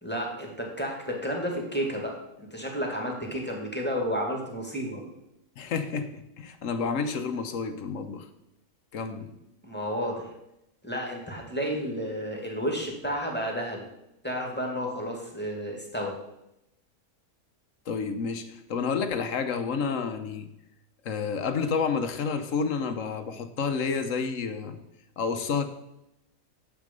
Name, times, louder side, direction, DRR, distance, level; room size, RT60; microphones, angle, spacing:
voice 1, 0.0-5.0 9.6-10.3 10.8-13.9 14.2-16.2, equal, 5° left, 0 dB, 2.0 m, -31 dB
voice 2, 5.6-8.2 8.9-9.3 17.9-20.5 21.0-24.8 25.2-25.6, left 5 dB, 60° left, 9 dB, 1.2 m, -30 dB
9.6 x 7.5 x 5.3 m, 0.85 s
omnidirectional pair, 1.5 m